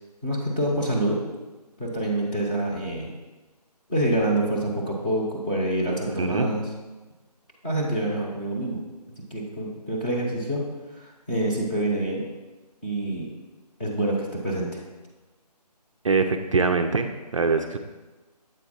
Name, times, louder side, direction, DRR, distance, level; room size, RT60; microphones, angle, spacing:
voice 1, 0.2-1.2 1.8-3.1 3.9-6.6 7.6-8.8 9.3-10.6 10.9-12.2 12.8-13.3 13.8-14.8, right 1 dB, 15° left, -5 dB, 0.9 m, -26 dB
voice 2, 5.9-6.5 16.0-17.8, right 4 dB, 50° right, 6 dB, 0.4 m, -24 dB
7.7 x 4.4 x 4.3 m, 1.2 s
figure-of-eight pair, 160°, 21 cm